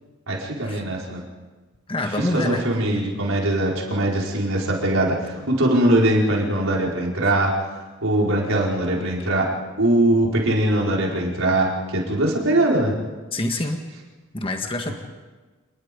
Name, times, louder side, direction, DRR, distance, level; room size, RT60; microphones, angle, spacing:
voice 1, 0.3-1.2 2.3-7.5 8.0-9.5 9.8-12.9, right 1 dB, 70° right, -2 dB, 4.8 m, -21 dB
voice 2, 1.9-2.6 13.3-13.8 14.3-14.9, left 1 dB, 25° left, 4 dB, 1.7 m, -26 dB
29.0 x 19.5 x 5.3 m, 1.3 s
head